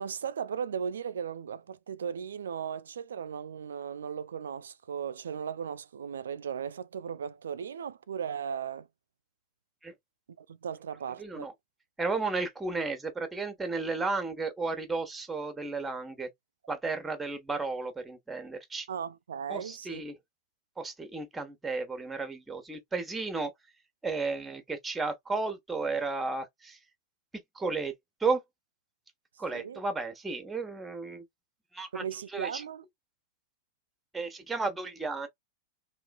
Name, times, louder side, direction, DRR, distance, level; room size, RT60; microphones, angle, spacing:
voice 1, 0.0-8.9 10.4-11.5 18.9-20.0 29.5-29.8 31.9-32.8, right 7 dB, 90° right, 0.4 m, -37 dB
voice 2, 11.2-11.5 12.0-16.3 16.7-18.9 19.5-20.1 20.8-23.5 24.0-26.8 27.5-27.9 28.2-28.4 29.4-31.2 31.7-32.0 32.3-32.6 34.1-35.3, right 3 dB, 10° right, 1.1 m, -33 dB
3.0 x 3.0 x 2.3 m
hypercardioid pair, 120°, 0 cm